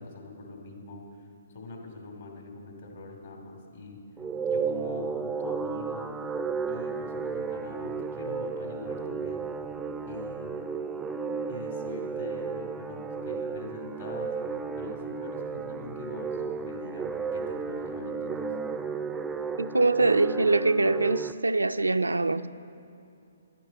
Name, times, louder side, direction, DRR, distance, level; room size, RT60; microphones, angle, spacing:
voice 1, 0.0-4.0 4.5-6.1 6.7-9.5 10.1-10.6 11.5-14.3 14.8-18.5, left 3 dB, 60° left, 2.4 m, -43 dB
sound 1, 4.2-21.3, right 5 dB, 10° right, 0.4 m, -33 dB
voice 2, 19.6-22.5, right 3 dB, 90° right, 0.4 m, -23 dB
10.5 x 8.8 x 6.9 m
figure-of-eight pair, 130°, 0 cm